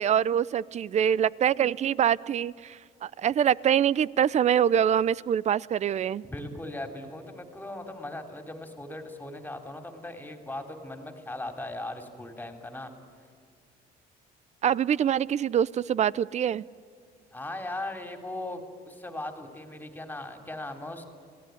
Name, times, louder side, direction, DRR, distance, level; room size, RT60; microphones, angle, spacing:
voice 1, 0.0-6.2 14.6-16.6, right 9 dB, 40° right, 21 dB, 0.6 m, -25 dB
voice 2, 6.3-12.9 17.3-21.1, left 1 dB, 10° left, 5 dB, 3.4 m, -38 dB
29.0 x 18.0 x 9.4 m, 2.3 s
cardioid pair, 110°, 17 cm